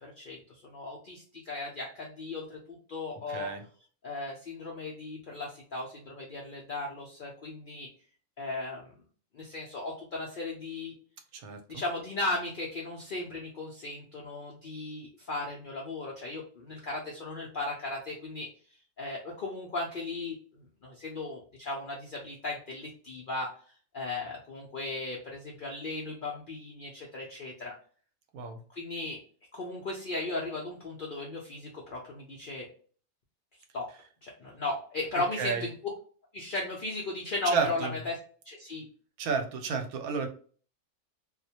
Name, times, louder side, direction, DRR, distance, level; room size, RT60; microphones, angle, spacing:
voice 1, 0.0-3.5 4.0-7.9 8.4-8.9 9.3-10.9 11.7-18.5 19.0-20.4 20.8-23.5 23.9-27.7 28.7-29.2 29.5-32.7 33.7-33.8 34.2-35.7 36.3-38.2 38.5-38.9, left 2 dB, 65° left, -2 dB, 0.5 m, -36 dB
voice 2, 3.3-3.6 11.3-11.8 28.3-28.6 35.1-35.7 37.5-38.0 39.2-40.3, right 5 dB, 85° right, 5 dB, 1.0 m, -32 dB
2.3 x 2.1 x 2.7 m, 0.43 s
omnidirectional pair, 1.5 m